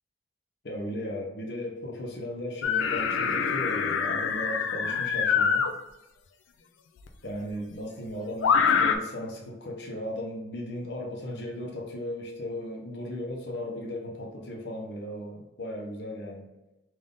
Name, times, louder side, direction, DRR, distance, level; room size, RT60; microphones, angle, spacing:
voice 1, 0.6-5.6 7.2-16.5, left 1 dB, 60° left, 0 dB, 0.8 m, -36 dB
sound 1, 2.6-5.7 7.1-7.2 8.4-9.0, left 6 dB, 85° left, 0.4 m, -25 dB
3.5 x 2.6 x 3.7 m, 0.98 s
head